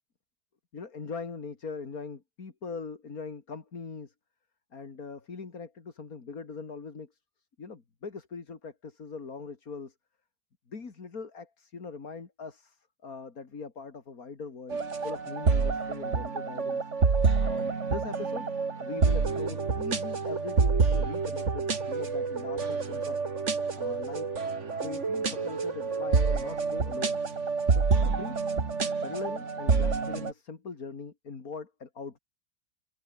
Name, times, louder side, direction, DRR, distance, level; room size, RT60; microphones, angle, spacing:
voice 1, 0.7-4.1 4.7-7.1 7.6-9.9 10.7-16.8 17.4-18.5 18.8-23.2 23.8-24.3 24.8-27.2 27.7-28.5 28.9-32.2, left 4 dB, 50° left, 2.9 m, -41 dB
sound 1, 14.7-30.3, right 4 dB, 40° right, 2.3 m, -28 dB
omnidirectional pair, 1.9 m